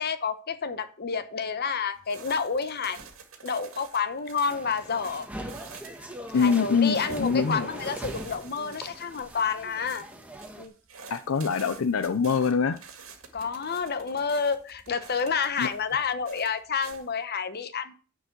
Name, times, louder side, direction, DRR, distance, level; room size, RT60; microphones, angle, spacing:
voice 1, 0.0-3.0 3.4-5.3 6.3-10.0 10.6-10.7 13.3-17.9, left 5 dB, 50° left, 1.0 m, -29 dB
sound 1, 1.9-17.2, right 5 dB, 80° right, 2.0 m, -49 dB
sound 2, 4.5-10.6, right 1 dB, 5° right, 1.3 m, -40 dB
voice 2, 6.3-7.7 11.1-12.8 15.6-15.7, left 5 dB, 75° left, 0.5 m, -24 dB
10.0 x 4.8 x 7.9 m
head